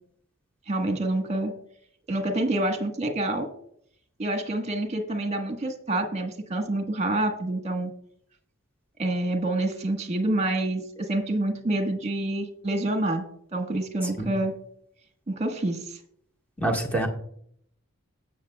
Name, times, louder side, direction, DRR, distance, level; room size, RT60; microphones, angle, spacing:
voice 1, 0.7-1.5 2.1-3.5 4.2-7.9 9.0-13.2 13.5-14.5 15.3-16.0, right 1 dB, 30° right, 5 dB, 1.4 m, -27 dB
voice 2, 16.6-17.1, right 1 dB, 5° left, 0 dB, 1.6 m, -25 dB
19.0 x 6.8 x 2.4 m, 0.67 s
head